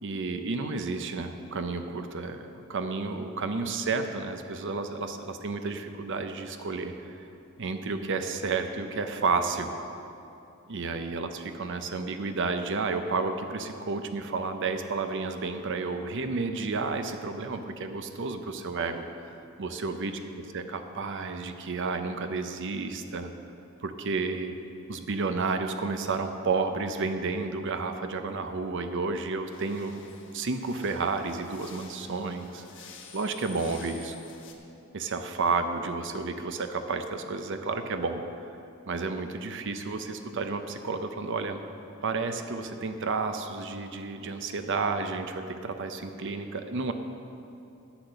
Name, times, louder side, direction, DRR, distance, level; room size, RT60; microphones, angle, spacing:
voice 1, 0.0-7.1 7.6-9.7 10.7-19.1 19.6-23.3 23.8-24.5 24.9-30.0 30.3-32.6 33.1-34.2 34.9-38.2 38.9-41.6 42.0-46.9, right 4 dB, 60° right, 7 dB, 0.6 m, -31 dB
sound 1, 29.5-34.5, left 6 dB, 60° left, 1.2 m, -50 dB
10.0 x 8.0 x 6.6 m, 2.8 s
head